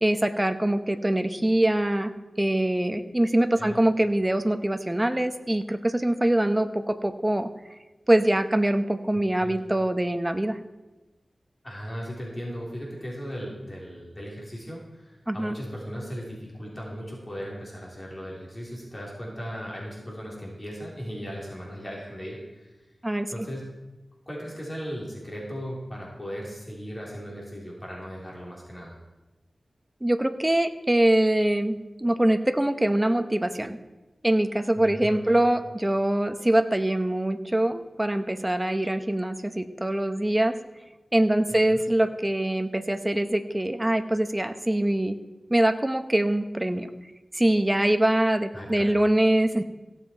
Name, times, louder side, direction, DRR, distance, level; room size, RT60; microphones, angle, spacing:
voice 1, 0.0-2.1 2.4-7.5 8.1-10.6 15.3-15.6 23.0-23.3 30.0-33.8 34.2-40.5 41.1-45.2 45.5-46.9 47.3-49.6, right 1 dB, 20° right, 9 dB, 0.8 m, -23 dB
voice 2, 11.6-22.7 23.3-23.7 24.3-29.0 34.8-35.5 41.5-41.8 48.5-48.9, equal, 30° left, -4 dB, 3.6 m, -37 dB
16.5 x 7.5 x 4.5 m, 1.1 s
cardioid pair, 50°, 0 cm